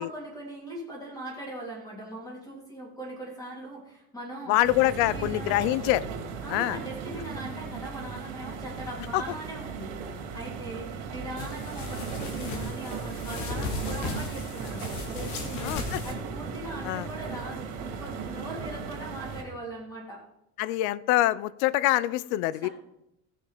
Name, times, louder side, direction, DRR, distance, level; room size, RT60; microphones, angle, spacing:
voice 1, 0.0-4.6 4.8-5.5 6.4-9.9 10.3-20.2 22.6-22.7, right 1 dB, 10° left, -2 dB, 3.0 m, -40 dB
voice 2, 4.5-6.0 6.5-6.8 9.1-9.2 15.6-16.0 16.8-17.1 20.6-22.7, left 16 dB, 80° left, 20 dB, 0.6 m, -25 dB
sound 1, 4.6-19.4, right 6 dB, 85° right, 2.8 m, -37 dB
sound 2, 11.4-16.1, left 3 dB, 55° left, 2.0 m, -36 dB
16.0 x 6.6 x 5.0 m, 0.82 s
cardioid pair, 160°, 33 cm